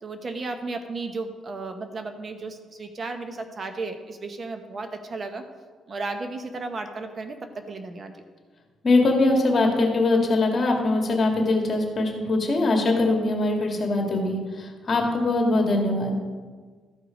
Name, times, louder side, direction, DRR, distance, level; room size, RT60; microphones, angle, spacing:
voice 1, 0.0-5.4 5.9-8.1, right 3 dB, 40° right, 7 dB, 0.9 m, -34 dB
voice 2, 8.8-16.2, left 2 dB, 40° left, 1 dB, 2.0 m, -22 dB
13.5 x 4.9 x 5.1 m, 1.5 s
cardioid pair, 90°, 0 cm